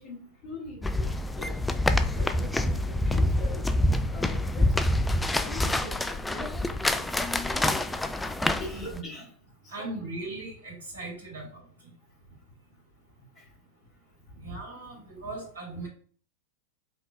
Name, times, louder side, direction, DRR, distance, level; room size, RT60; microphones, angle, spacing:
voice 1, 0.0-1.6 2.1-3.6 4.1-4.8 5.4-7.2 8.6-9.3 9.6-9.9 13.4-13.5 14.5-14.6 15.7-15.8, left 2 dB, 35° left, -8 dB, 1.9 m, -43 dB
sound 1, 0.8-9.0, left 1 dB, 5° left, 0.4 m, -26 dB
voice 2, 8.7-9.0 9.7-11.6 14.4-15.9, right 2 dB, 70° right, -1 dB, 2.3 m, -38 dB
5.1 x 3.8 x 2.3 m, 0.43 s
figure-of-eight pair, 90°, 0 cm